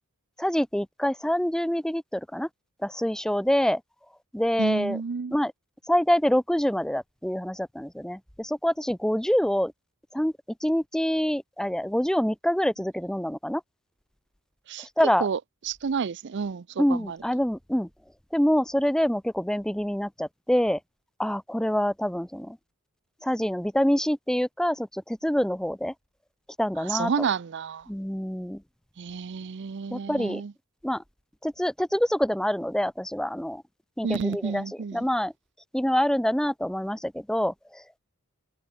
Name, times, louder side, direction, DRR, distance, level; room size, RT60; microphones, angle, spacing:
voice 1, 0.4-2.5 2.8-3.8 4.3-5.0 5.3-5.5 5.9-9.7 10.1-10.3 10.6-13.6 15.0-15.3 16.8-17.9 18.3-20.8 21.2-22.6 23.2-25.9 26.6-27.1 27.9-28.6 29.9-30.4 30.8-31.0 31.4-33.6 34.0-34.6 34.9-35.3 35.7-38.0, equal, 5° left, 0.7 m, -26 dB
voice 2, 4.6-5.4 14.7-14.9 15.2-17.2 26.8-27.9 29.0-30.5 34.0-35.1, right 5 dB, 50° right, 0.5 m, -30 dB
head